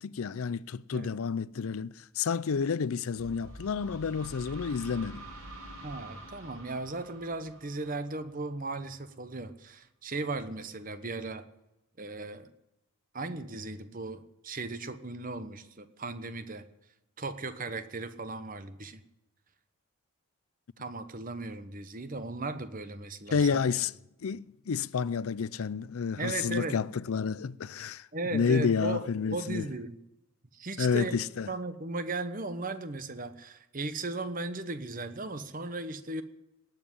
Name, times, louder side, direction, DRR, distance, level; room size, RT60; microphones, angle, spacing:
voice 1, 0.0-5.3 23.3-23.9 24.2-29.7 30.8-31.5, left 6 dB, 75° left, 0.5 m, -30 dB
sound 1, 3.2-8.8, right 1 dB, 75° right, 5.5 m, -47 dB
voice 2, 5.8-11.5 12.0-12.5 13.1-16.7 17.2-19.0 20.8-23.6 26.2-26.8 28.1-30.0 30.5-31.2 31.5-36.2, right 2 dB, 40° right, 1.1 m, -37 dB
19.0 x 7.4 x 10.0 m
head